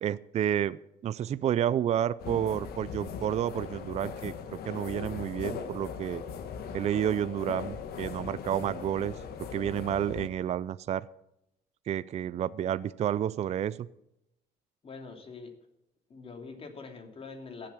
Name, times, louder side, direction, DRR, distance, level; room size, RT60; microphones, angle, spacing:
voice 1, 0.0-4.3 4.6-6.2 6.7-9.2 9.5-11.1 11.9-13.9, right 10 dB, 40° right, 17 dB, 0.4 m, -30 dB
sound 1, 2.2-10.3, left 7 dB, 65° left, 1.5 m, -39 dB
voice 2, 14.8-15.5 16.1-17.7, left 4 dB, 35° left, 5 dB, 2.7 m, -44 dB
15.5 x 7.7 x 6.9 m, 0.84 s
cardioid pair, 110°, 17 cm